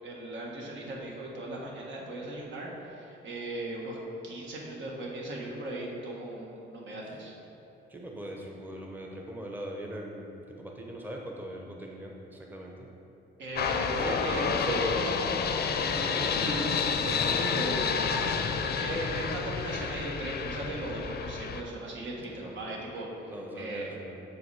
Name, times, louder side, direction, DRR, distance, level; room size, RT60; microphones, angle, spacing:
voice 1, 0.0-4.0 4.2-7.3 13.4-15.1 15.7-16.6 17.0-18.2 18.6-23.9, right 1 dB, 70° right, -2 dB, 1.5 m, -37 dB
voice 2, 7.9-12.9 13.9-15.1 15.9-16.5 18.1-18.5 18.8-19.3 22.2-22.7 23.3-24.2, right 1 dB, 10° right, 0 dB, 0.8 m, -41 dB
sound 1, 13.6-21.6, left 6 dB, 55° left, 0.5 m, -29 dB
6.7 x 5.0 x 4.8 m, 2.9 s
cardioid pair, 90°, 20 cm